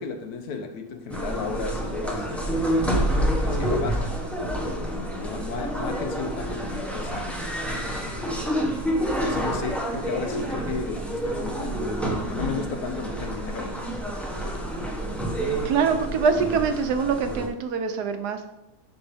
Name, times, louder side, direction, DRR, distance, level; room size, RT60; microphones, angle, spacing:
voice 1, 0.0-2.9 3.2-4.2 4.6-7.5 8.0-8.6 9.2-13.8 14.4-14.8, left 5 dB, 70° left, 6 dB, 1.3 m, -35 dB
sound 1, 1.1-17.5, right 1 dB, ahead, 0.7 m, -28 dB
voice 2, 15.6-18.5, right 5 dB, 75° right, 7 dB, 1.3 m, -24 dB
11.0 x 4.4 x 3.5 m, 0.96 s
omnidirectional pair, 1.8 m